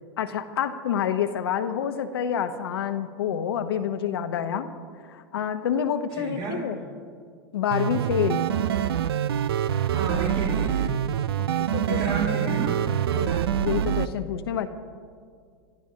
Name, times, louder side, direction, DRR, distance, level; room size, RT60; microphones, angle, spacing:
voice 1, 0.2-4.7 5.1-6.8 7.5-8.4 11.4-12.0 12.4-12.5 13.1-14.7, left 8 dB, 80° left, 7 dB, 1.1 m, -28 dB
voice 2, 6.2-6.6 9.9-11.0 11.8-12.8, right 4 dB, 45° right, -4 dB, 3.6 m, -30 dB
sound 1, 7.7-14.1, right 10 dB, 85° right, 0.5 m, -25 dB
28.5 x 13.5 x 2.9 m, 2.1 s
hypercardioid pair, 100°, 13 cm